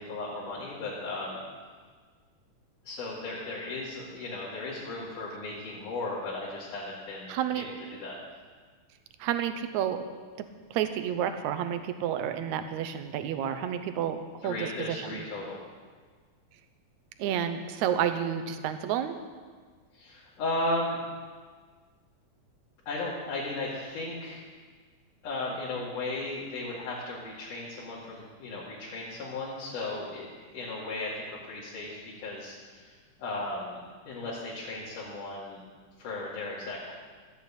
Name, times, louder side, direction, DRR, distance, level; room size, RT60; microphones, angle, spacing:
voice 1, 0.0-1.4 2.8-7.7 8.0-8.2 14.4-15.6 19.9-21.0 22.9-24.4 25.2-32.9 33.2-33.8 34.1-35.6 36.0-36.9, left 2 dB, 80° left, -9 dB, 3.9 m, -35 dB
voice 2, 7.3-7.7 9.2-10.0 10.7-15.2 17.2-19.2, right 9 dB, 75° right, 8 dB, 2.1 m, -30 dB
13.5 x 8.3 x 8.6 m, 1.5 s
omnidirectional pair, 3.6 m